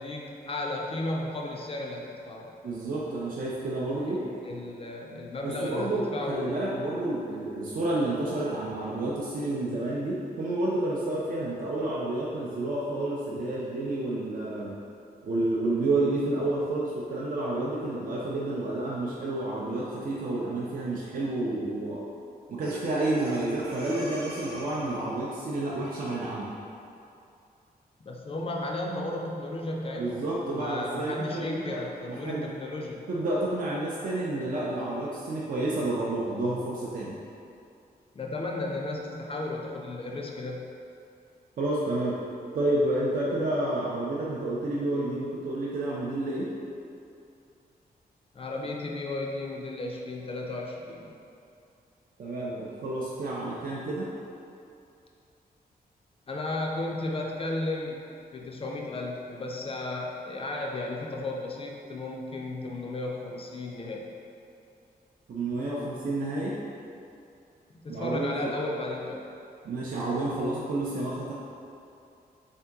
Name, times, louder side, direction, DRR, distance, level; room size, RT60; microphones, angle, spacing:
voice 1, 0.0-2.5 4.0-6.5 28.0-30.2 30.5-33.0 38.1-40.6 48.3-51.2 56.3-58.0 58.3-64.0 67.8-69.2, left 2 dB, 35° left, -1 dB, 0.4 m, -34 dB
voice 2, 2.6-4.2 5.4-14.7 15.2-22.0 22.5-26.5 30.0-31.8 32.1-32.5 33.1-37.1 41.6-42.2 42.5-46.5 52.2-54.1 65.3-66.6 67.9-68.5 69.6-71.3, right 2 dB, 60° right, -6 dB, 0.5 m, -30 dB
Breathing, 22.6-25.2, right 1 dB, 80° right, 0.8 m, -39 dB
3.7 x 2.8 x 3.4 m, 2.6 s
wide cardioid pair, 130°, 16 cm